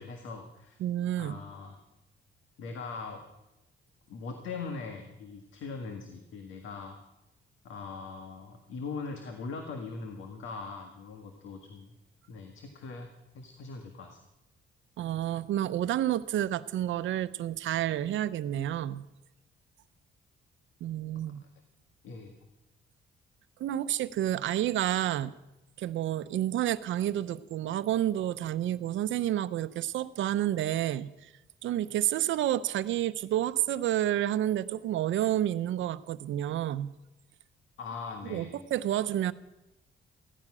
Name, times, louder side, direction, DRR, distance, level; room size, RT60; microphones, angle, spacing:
voice 1, 0.0-0.8 1.2-1.8 2.6-3.2 4.1-7.0 7.6-11.9 12.3-13.1 13.4-14.2 22.0-22.4 37.8-38.6, left 4 dB, 75° left, 4 dB, 1.8 m, -41 dB
voice 2, 0.8-1.4 15.0-19.0 20.8-21.4 23.6-25.3 25.8-31.3 31.6-36.9 38.3-39.3, right 12 dB, 75° right, 13 dB, 0.8 m, -30 dB
16.0 x 14.0 x 6.2 m, 0.96 s
cardioid pair, 90°, 20 cm